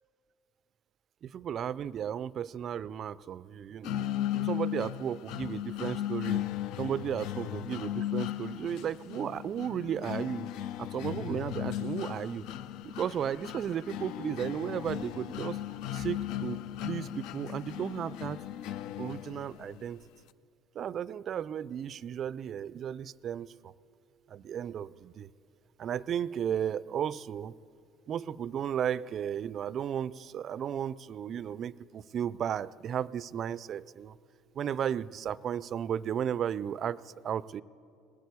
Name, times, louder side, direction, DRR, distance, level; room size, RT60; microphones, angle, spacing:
voice 1, 1.2-4.1 4.3-6.4 6.8-10.5 10.8-12.5 12.8-15.6 15.9-18.4 19.0-20.0 20.7-23.7 24.3-25.3 25.8-27.6 28.1-34.1 34.5-37.6, right 9 dB, 50° right, 19 dB, 0.3 m, -34 dB
sound 1, 3.8-19.8, left 12 dB, 70° left, 0.4 m, -36 dB
20.0 x 8.5 x 8.2 m, 2.6 s
supercardioid pair, 85°, 0 cm